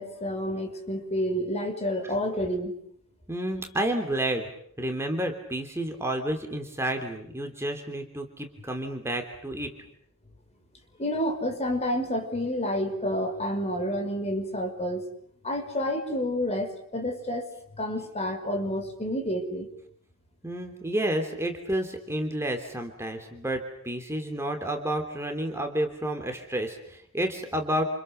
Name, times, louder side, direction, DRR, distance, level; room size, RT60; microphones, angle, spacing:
voice 1, 0.0-2.7 11.0-15.1 15.4-17.5 17.8-19.7, equal, 30° left, 4 dB, 5.6 m, -29 dB
voice 2, 3.3-4.5 4.8-9.7 20.4-27.8, right 1 dB, 10° right, 4 dB, 3.2 m, -30 dB
29.5 x 29.0 x 6.7 m, 0.67 s
head